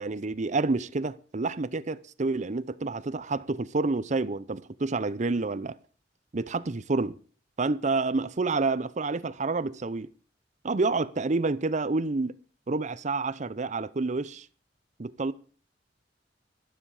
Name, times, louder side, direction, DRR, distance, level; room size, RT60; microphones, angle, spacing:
voice 1, 0.0-5.8 6.3-7.2 7.6-10.1 10.6-12.4 12.7-14.5 15.0-15.3, right 3 dB, 45° right, 0.6 m, -28 dB
12.5 x 12.5 x 4.9 m
head